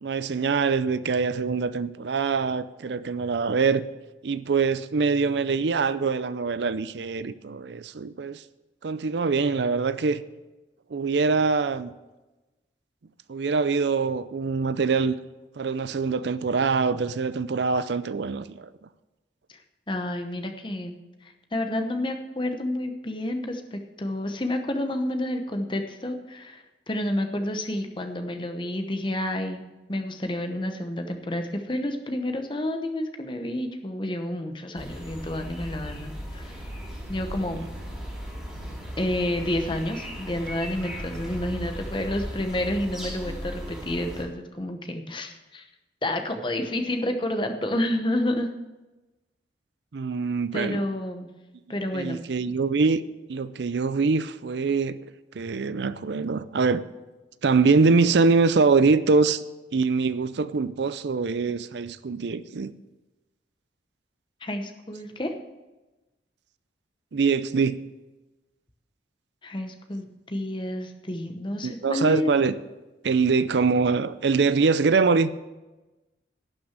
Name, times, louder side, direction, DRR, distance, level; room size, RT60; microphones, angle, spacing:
voice 1, 0.0-3.8 4.2-8.4 8.8-10.2 10.9-11.9 13.3-15.2 15.6-18.7 49.9-50.8 51.9-53.0 53.3-55.0 55.4-56.8 57.4-59.4 59.7-62.7 67.1-67.8 71.6-72.5 73.0-75.3, right 4 dB, 70° right, 0.5 m, -24 dB
voice 2, 19.9-21.0 21.5-29.6 29.9-36.5 37.1-37.7 39.0-45.7 46.0-48.5 50.5-51.3 51.7-52.2 64.4-65.3 69.4-72.3, left 1 dB, 25° left, 0.9 m, -29 dB
sound 1, 34.7-44.2, equal, ahead, 3.0 m, -37 dB
11.5 x 6.1 x 8.0 m
head